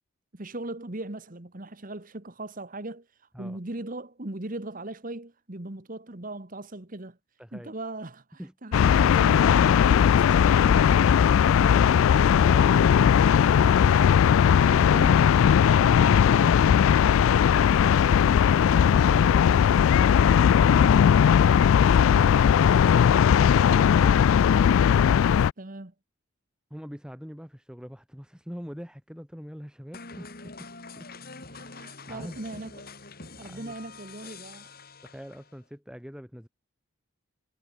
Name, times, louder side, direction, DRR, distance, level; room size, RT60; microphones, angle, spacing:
voice 1, 0.3-3.1 3.4-7.2 7.5-11.2 13.5-14.0 14.3-15.2 25.6-25.9 31.5-32.9 33.4-34.8, right 2 dB, 40° right, 1.5 m, -39 dB
voice 2, 7.4-7.7 8.4-8.5 11.4-13.9 14.3-15.2 15.5-16.7 26.7-30.7 31.0-31.1 32.1-32.4 33.4-33.8 35.0-36.5, equal, 5° right, 5.3 m, -44 dB
sound 1, 8.7-25.5, left 8 dB, 75° left, 0.3 m, -18 dB
sound 2, 29.9-35.6, left 3 dB, 45° left, 3.8 m, -45 dB
head